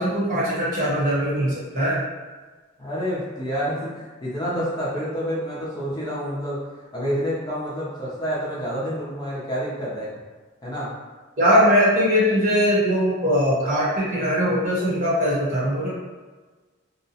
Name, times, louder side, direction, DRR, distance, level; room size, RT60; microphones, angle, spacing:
voice 1, 0.0-2.0 11.4-15.9, equal, 40° right, -8 dB, 1.0 m, -21 dB
voice 2, 2.8-6.6 6.9-10.1 10.6-10.9, equal, 20° left, -8 dB, 0.6 m, -28 dB
2.8 x 2.1 x 2.7 m, 1.3 s
head